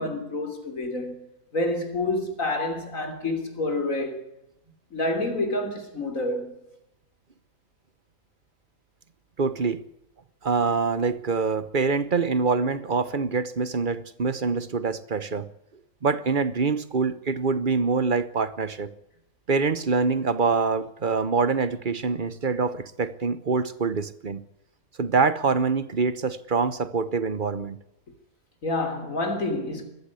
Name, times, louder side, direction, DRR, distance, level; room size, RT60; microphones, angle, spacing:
voice 1, 0.0-4.3 4.9-6.6 28.6-29.8, left 2 dB, 65° left, 3.7 m, -28 dB
voice 2, 9.4-9.8 10.4-15.5 16.0-18.9 19.5-24.4 25.0-27.8, right 4 dB, 40° right, 1.1 m, -25 dB
20.5 x 15.0 x 8.4 m
omnidirectional pair, 1.5 m